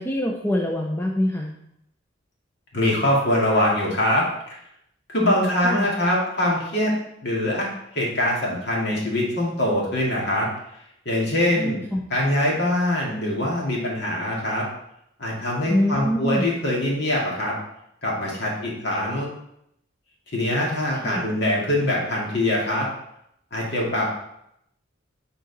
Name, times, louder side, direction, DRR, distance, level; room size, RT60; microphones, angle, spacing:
voice 1, 0.0-1.5 5.6-5.9 11.6-12.0 15.7-16.4 20.9-21.3, equal, 10° left, 0 dB, 0.5 m, -25 dB
voice 2, 2.7-4.6 5.1-6.9 7.2-10.5 11.1-11.8 12.1-14.7 15.2-17.6 18.0-19.3 20.3-22.9 23.5-24.1, left 1 dB, 55° left, -3 dB, 2.1 m, -23 dB
9.1 x 4.0 x 4.0 m, 0.77 s
head